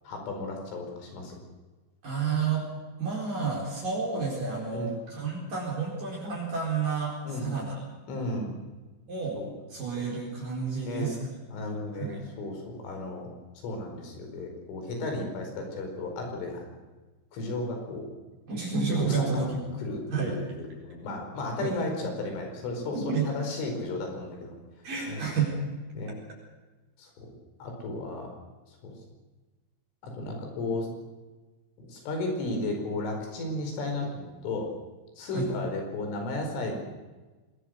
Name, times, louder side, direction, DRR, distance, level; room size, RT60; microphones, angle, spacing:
voice 1, 0.1-1.4 4.7-4.9 7.3-7.5 8.1-8.6 9.4-9.5 10.8-11.1 11.5-13.3 13.6-16.7 17.3-18.1 19.0-19.5 19.8-24.5 25.1-25.3 26.0-26.2 27.0-27.3 27.6-28.3 28.8-28.9 30.0-30.9 31.8-34.7 35.2-36.8, left 2 dB, 85° left, 3 dB, 7.3 m, -34 dB
voice 2, 2.0-2.7 3.0-7.8 9.1-9.4 9.7-11.2 11.9-12.3 18.5-19.6 20.1-20.4 21.6-21.8 22.9-23.3 24.8-25.5 35.3-35.5, right 5 dB, 45° right, -3 dB, 5.7 m, -30 dB
25.0 x 20.0 x 6.6 m, 1.2 s
omnidirectional pair, 5.5 m